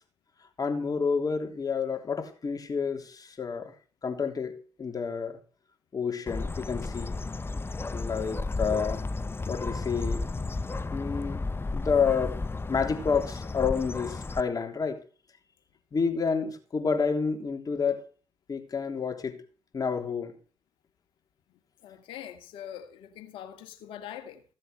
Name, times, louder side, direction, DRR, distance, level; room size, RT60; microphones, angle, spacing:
voice 1, 0.6-3.7 4.0-5.4 5.9-7.2 7.9-9.0 9.5-10.2 10.9-12.4 12.7-15.0 15.9-18.1 18.5-19.4 19.7-20.3, left 5 dB, 45° left, 3.4 m, -29 dB
Bird, 6.3-14.4, left 3 dB, 25° left, 0.8 m, -33 dB
voice 2, 21.8-24.4, left 10 dB, 80° left, 2.0 m, -43 dB
16.0 x 7.7 x 6.6 m
hypercardioid pair, 45°, 9 cm